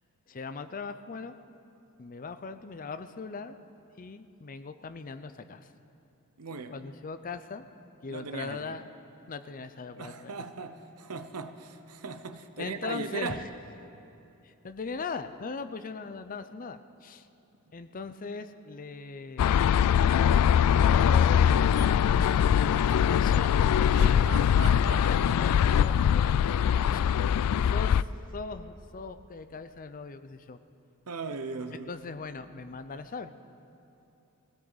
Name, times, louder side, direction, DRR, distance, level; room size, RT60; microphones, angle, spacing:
voice 1, 0.3-1.3 2.0-3.6 4.0-5.7 6.7-7.6 8.0-8.9 9.3-10.3 12.6-13.5 14.4-17.3 17.7-19.9 20.9-23.7 25.0-25.6 25.8-27.0 27.3-28.1 28.3-30.6 31.9-33.3, left 4 dB, 40° left, 0.5 m, -39 dB
voice 2, 6.4-6.8 8.1-8.8 10.0-13.4 23.9-25.4 31.1-31.9, right 4 dB, 85° right, 0.8 m, -38 dB
sound 1, 19.4-28.0, left 8 dB, 85° left, 0.3 m, -22 dB
21.5 x 17.0 x 4.0 m
head